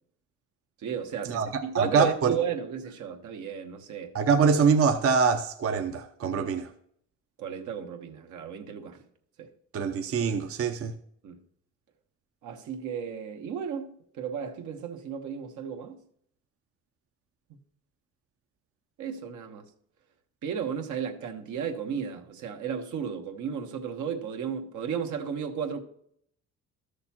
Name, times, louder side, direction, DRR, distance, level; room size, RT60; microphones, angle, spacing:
voice 1, 0.8-4.1 7.4-9.0 9.4-9.5 11.2-11.4 12.4-16.0 19.0-19.6 20.4-25.8, right 7 dB, 80° right, 1.1 m, -34 dB
voice 2, 1.7-2.3 4.1-6.7 9.7-10.9, right 5 dB, 50° right, 0.7 m, -24 dB
13.0 x 6.5 x 2.9 m
cardioid pair, 90°, 30 cm